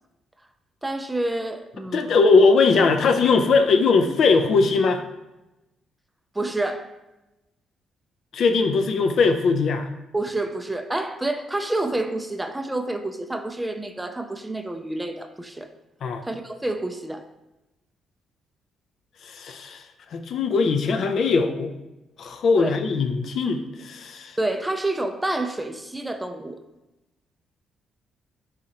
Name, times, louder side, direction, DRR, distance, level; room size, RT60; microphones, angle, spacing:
voice 1, 0.8-2.2 6.4-6.9 10.1-15.7 16.2-17.3 22.6-22.7 24.4-26.6, right 2 dB, 10° right, 7 dB, 0.4 m, -28 dB
voice 2, 1.9-5.0 8.3-9.9 16.0-16.2 19.2-19.8 20.1-21.7 22.2-24.4, left 4 dB, 65° left, 6 dB, 0.4 m, -20 dB
4.1 x 3.8 x 2.8 m, 0.99 s
cardioid pair, 90°, 0 cm